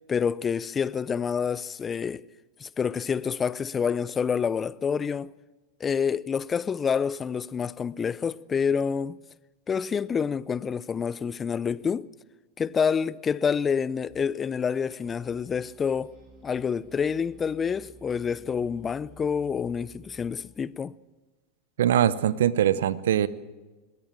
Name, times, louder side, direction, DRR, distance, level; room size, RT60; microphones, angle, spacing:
voice 1, 0.1-2.2 2.6-5.3 5.8-9.2 9.7-12.1 12.6-16.2 16.4-20.9, left 6 dB, 25° left, 0.6 m, -28 dB
sound 1, 14.1-20.6, right 3 dB, 55° right, 7.9 m, -53 dB
voice 2, 21.8-23.3, right 10 dB, 75° right, 0.8 m, -22 dB
21.5 x 16.5 x 7.4 m
hypercardioid pair, 95°, 0 cm